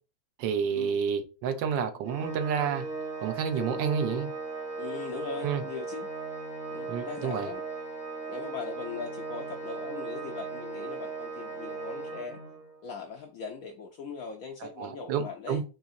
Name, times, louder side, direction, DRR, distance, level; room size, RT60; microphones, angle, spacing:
voice 1, 0.4-2.8 3.2-4.3 5.4-5.6 6.9-7.5 14.6-15.6, right 7 dB, 80° right, 1.3 m, -30 dB
Organ, 2.1-12.8, right 4 dB, 15° right, 0.6 m, -37 dB
voice 2, 4.8-6.1 6.7-7.6 8.3-12.4 12.8-15.6, left 5 dB, 75° left, 0.8 m, -40 dB
4.2 x 2.8 x 2.5 m
omnidirectional pair, 2.0 m